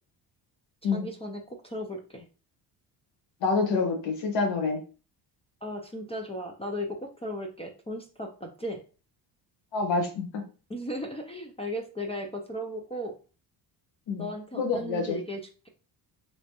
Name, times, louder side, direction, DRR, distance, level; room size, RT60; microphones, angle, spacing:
voice 1, 0.8-2.2 5.6-8.8 10.7-13.1 14.2-15.7, equal, 15° left, 2 dB, 0.3 m, -36 dB
voice 2, 3.4-4.8 9.7-10.4 14.1-14.3 14.5-15.2, left 4 dB, 90° left, 3 dB, 1.2 m, -27 dB
3.3 x 3.0 x 2.8 m, 0.37 s
cardioid pair, 120°, 44 cm